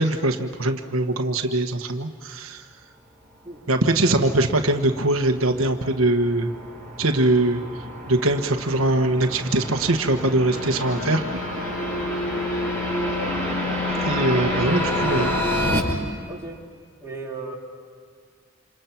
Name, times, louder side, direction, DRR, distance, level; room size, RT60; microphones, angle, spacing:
voice 1, 0.0-2.6 3.7-6.5 7.0-7.6 8.1-11.4 14.0-15.4, right 2 dB, 85° right, 4 dB, 1.4 m, -22 dB
sound 1, 4.3-15.8, left 1 dB, 10° left, 5.7 m, -29 dB
sound 2, 10.5-15.7, left 1 dB, 85° left, 2.5 m, -32 dB
voice 2, 16.3-16.6 17.0-17.5, right 3 dB, 15° right, -4 dB, 3.8 m, -35 dB
28.0 x 27.5 x 6.0 m, 2.1 s
head